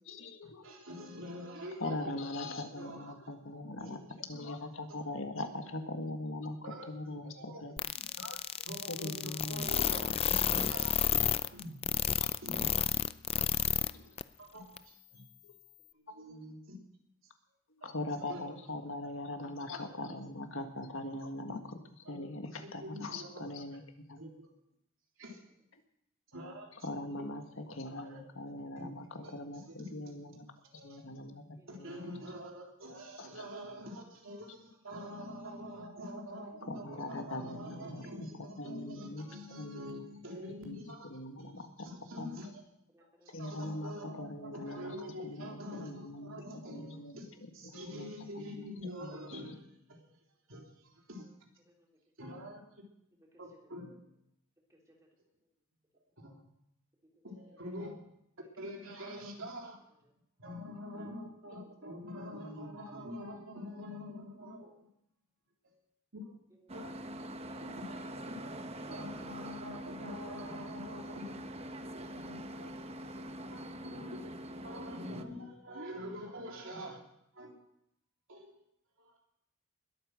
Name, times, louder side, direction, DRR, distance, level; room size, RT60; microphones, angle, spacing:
voice 1, 0.1-0.8 1.8-7.8 8.2-8.4 8.9-9.7 10.5-10.7 11.4-11.5 13.9-14.2 15.4-15.5 17.7-21.8 22.1-23.8 24.1-24.2 26.7-30.4 30.7-31.4 31.7-32.2 33.2-33.4 36.7-39.3 39.6-39.9 40.6-42.3 43.3-46.4 46.7-48.1 48.3-48.7 49.0-49.5, left 2 dB, 65° left, 5 dB, 1.8 m, -41 dB
voice 2, 0.6-2.2 2.8-3.3 3.8-4.0 6.6-6.9 7.4-7.6 8.7-10.9 11.5-11.8 12.4-12.7 13.6-14.1 14.4-15.2 15.9-16.8 18.3-18.5 21.5-21.6 22.1-22.3 22.8-23.5 24.2-24.5 25.2-25.4 26.3-26.7 27.2-27.3 28.0-28.2 28.8-29.3 29.7-29.9 30.8-31.0 31.7-41.2 41.8-42.6 43.0-47.3 47.5-49.6 49.9-50.1 50.5-51.3 52.2-52.6 53.4-54.0 56.2-56.4 57.2-57.9 58.6-59.8 60.4-64.9 65.6-65.8 66.1-66.3 66.7-67.0 67.4-68.4 68.8-71.4 71.9-74.2 74.6-77.0 77.3-77.6 78.3-78.6 79.0-79.1, equal, 70° right, 0 dB, 3.6 m, -45 dB
sound 1, 7.8-13.9 14.2-14.3 14.8-14.9, left 9 dB, 30° left, 0.5 m, -30 dB
voice 3, 31.5-32.3 33.2-33.3 36.4-36.5 42.9-43.4 51.6-52.0 53.1-53.7 54.7-55.2 57.1-57.2 57.5-57.6 60.0-60.1 66.5-66.9, equal, 15° right, -1 dB, 3.4 m, -65 dB
sound 2, 66.7-75.2, right 1 dB, 30° right, 1.0 m, -44 dB
21.0 x 8.9 x 6.4 m, 0.76 s
head